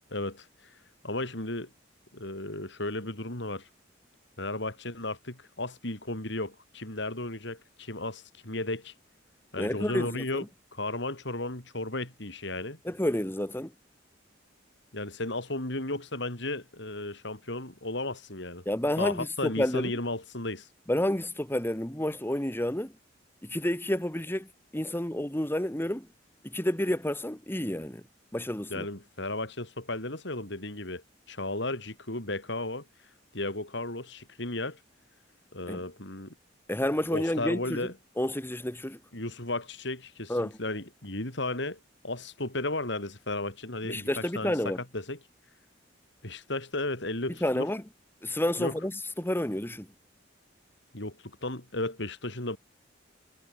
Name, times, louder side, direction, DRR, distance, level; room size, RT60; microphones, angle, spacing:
voice 1, 0.1-0.7 1.0-1.7 2.1-3.7 4.4-8.9 9.5-10.4 10.7-12.8 14.9-18.6 19.0-20.7 28.7-32.8 33.3-34.8 35.5-36.3 37.1-37.9 39.1-44.6 44.9-45.2 46.2-47.7 48.6-48.7 50.9-52.6, left 2 dB, 65° left, 5.6 m, -34 dB
voice 2, 9.6-10.5 12.9-13.7 18.7-19.9 20.9-22.9 23.4-26.1 26.4-28.0 28.3-28.9 35.7-35.8 36.7-37.9 38.2-39.0 40.3-40.6 43.8-44.8 47.4-47.8 48.2-48.9 49.2-49.9, left 1 dB, 10° left, 1.8 m, -30 dB
head